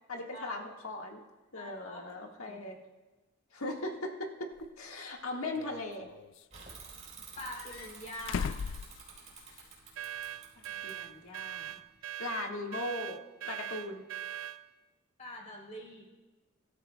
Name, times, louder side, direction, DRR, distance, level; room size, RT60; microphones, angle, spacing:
voice 1, 0.1-1.2 1.5-2.8 3.5-6.1 10.7-11.8 12.2-14.1, left 2 dB, 80° left, 1 dB, 1.6 m, -39 dB
voice 2, 1.5-2.6 7.4-8.6 15.2-16.0, left 1 dB, 35° left, -2 dB, 3.3 m, -45 dB
sound 1, 4.6-4.7 5.5-6.5 7.4-9.7 10.0-10.1 11.7-11.8, left 6 dB, 60° left, 0.3 m, -39 dB
Bicycle / Mechanisms, 6.5-12.0, right 5 dB, 35° right, 4.0 m, -51 dB
sound 2, 10.0-14.6, right 11 dB, 65° right, 0.5 m, -41 dB
24.0 x 13.5 x 2.2 m, 1.2 s
head